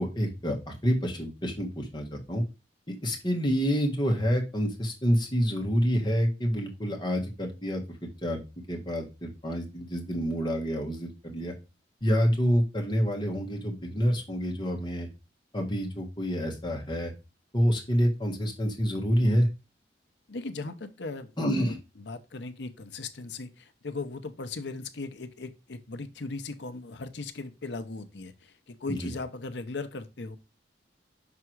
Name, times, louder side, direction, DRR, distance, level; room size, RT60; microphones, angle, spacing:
voice 1, 0.0-2.4 2.9-7.8 8.2-8.4 8.7-11.5 12.0-15.1 15.5-17.1 17.5-19.5 21.4-21.8 28.9-29.1, equal, 25° left, 1.5 m, -27 dB
voice 2, 20.3-30.4, left 3 dB, 75° left, 0.8 m, -38 dB
6.0 x 3.6 x 4.5 m
head